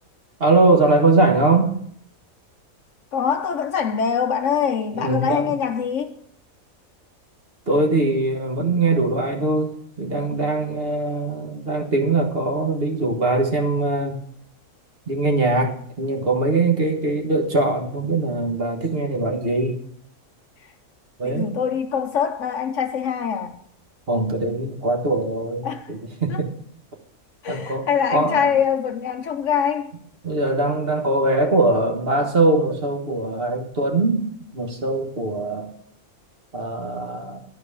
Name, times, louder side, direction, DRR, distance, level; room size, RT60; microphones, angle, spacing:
voice 1, 0.4-1.8 4.9-5.5 7.7-14.2 15.1-19.8 21.2-21.5 24.1-26.5 27.5-28.5 30.2-34.3 34.5-35.7 36.5-37.4, right 2 dB, 40° right, 1.7 m, -21 dB
voice 2, 3.1-6.2 21.2-23.5 25.6-25.9 26.3-26.4 27.4-29.9, left 7 dB, 65° left, 1.0 m, -23 dB
12.0 x 4.6 x 8.4 m
omnidirectional pair, 1.5 m